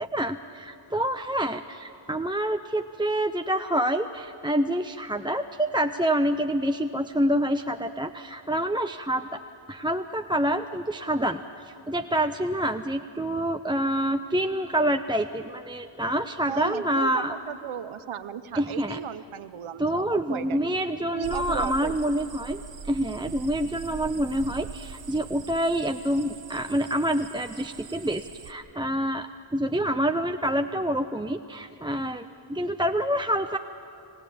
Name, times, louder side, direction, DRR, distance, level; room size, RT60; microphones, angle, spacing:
voice 1, 0.0-9.4 9.7-17.3 18.5-19.0 19.8-33.6, right 1 dB, 10° right, 6 dB, 0.5 m, -27 dB
voice 2, 16.5-20.6 21.1-21.9, right 8 dB, 90° right, 13 dB, 0.8 m, -35 dB
sound 1, 21.2-28.5, right 6 dB, 65° right, 1.0 m, -42 dB
26.0 x 16.0 x 8.5 m, 2.9 s
cardioid pair, 55°, 47 cm